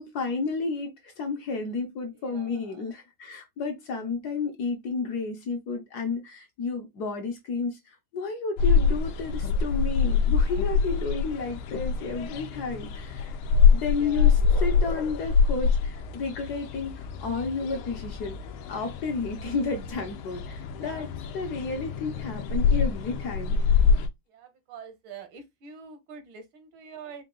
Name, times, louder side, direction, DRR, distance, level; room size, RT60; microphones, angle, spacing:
voice 1, 0.0-13.3 13.7-18.4 18.7-21.1 21.3-23.6, left 4 dB, 60° left, 1.1 m, -32 dB
voice 2, 2.2-2.8 14.0-14.3 20.8-21.1 24.3-27.2, right 6 dB, 75° right, 1.7 m, -45 dB
sound 1, 8.6-24.1, left 5 dB, 90° left, 1.5 m, -25 dB
4.6 x 2.3 x 3.7 m
omnidirectional pair, 2.2 m